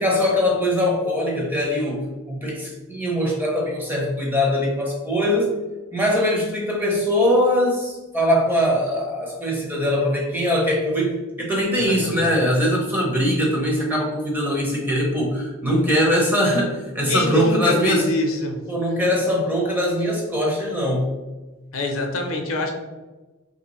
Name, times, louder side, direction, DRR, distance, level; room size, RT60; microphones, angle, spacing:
voice 1, 0.0-5.5 5.9-18.0 18.7-21.1, equal, 10° right, -1 dB, 0.5 m, -22 dB
voice 2, 11.9-12.3 17.1-18.6 21.7-22.7, left 1 dB, 70° left, 3 dB, 0.5 m, -24 dB
3.2 x 2.6 x 2.9 m, 1.2 s
head